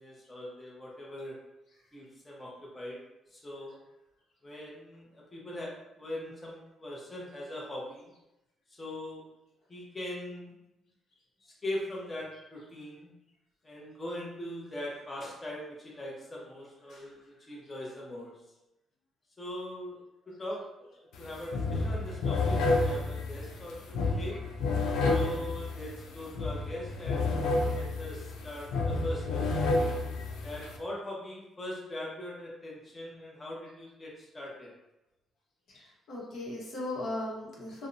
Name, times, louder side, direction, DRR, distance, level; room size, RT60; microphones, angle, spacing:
voice 1, 0.0-1.4 1.9-3.0 3.3-3.8 4.4-8.1 8.8-9.2 9.7-10.5 11.6-13.1 13.6-18.4 19.4-20.0 20.3-24.4 25.1-29.8 30.4-34.7, left 1 dB, 25° left, -4 dB, 0.7 m, -41 dB
sound 1, 21.1-21.3 21.5-30.8, left 3 dB, 85° left, 0.3 m, -30 dB
voice 2, 35.7-37.9, left 1 dB, 65° left, -4 dB, 0.8 m, -38 dB
2.6 x 2.0 x 2.5 m, 0.93 s
cardioid pair, 90°, 0 cm